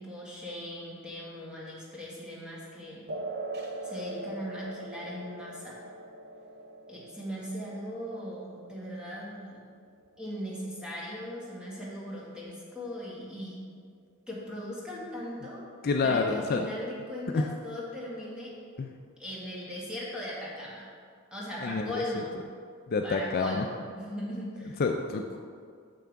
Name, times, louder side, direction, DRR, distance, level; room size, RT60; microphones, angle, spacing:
voice 1, 0.0-3.1 3.8-5.8 6.9-9.6 10.2-13.6 14.3-15.6 16.0-18.5 19.2-20.9 21.3-22.3 23.0-24.8, equal, 5° right, -6 dB, 1.7 m, -39 dB
sound 1, 3.1-10.1, right 2 dB, 50° right, 0.8 m, -42 dB
voice 2, 15.8-16.6 17.3-17.5 18.8-19.0 21.6-22.0 22.9-23.7 24.8-25.4, left 4 dB, 45° left, 3 dB, 0.4 m, -28 dB
6.9 x 5.9 x 4.6 m, 2.1 s
head